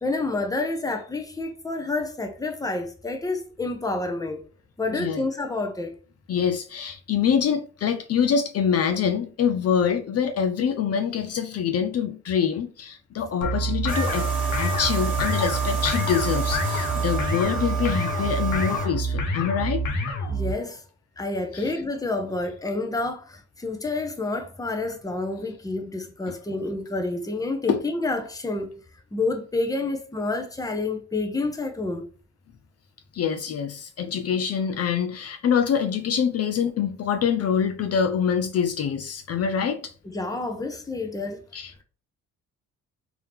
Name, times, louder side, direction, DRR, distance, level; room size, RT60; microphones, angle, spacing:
voice 1, 0.0-4.4 4.8-6.0 20.3-20.8 21.2-28.7 29.1-32.1 40.0-41.8, left 2 dB, 10° left, 0.8 m, -29 dB
voice 2, 4.9-5.2 6.3-14.3 14.5-19.8 21.5-21.7 27.7-27.8 33.1-39.9 41.5-41.7, left 7 dB, 55° left, 0.6 m, -25 dB
sound 1, 13.4-20.5, right 1 dB, 85° left, 1.1 m, -27 dB
sound 2, 13.9-18.9, right 5 dB, 5° right, 1.8 m, -31 dB
3.6 x 2.9 x 3.5 m
cardioid pair, 90°, 30 cm